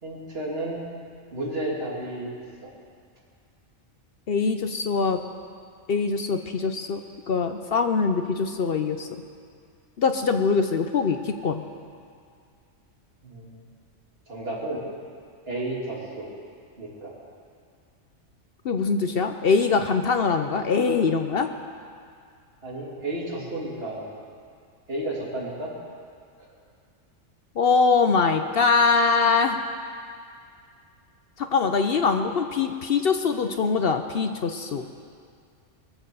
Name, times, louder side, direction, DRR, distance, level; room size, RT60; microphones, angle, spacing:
voice 1, 0.0-0.8 1.3-2.3 2.6-2.7 13.2-13.6 14.3-14.8 15.5-16.3 16.8-17.1 22.6-24.1 24.9-25.7 26.4-26.5, right 1 dB, 50° right, -4 dB, 2.9 m, -32 dB
voice 2, 4.3-5.2 5.9-7.0 7.3-9.1 10.0-11.6 18.6-21.5 27.6-29.6 31.4-34.9, left 5 dB, 55° left, 7 dB, 0.8 m, -23 dB
22.0 x 7.7 x 6.9 m, 2.2 s
omnidirectional pair, 1.3 m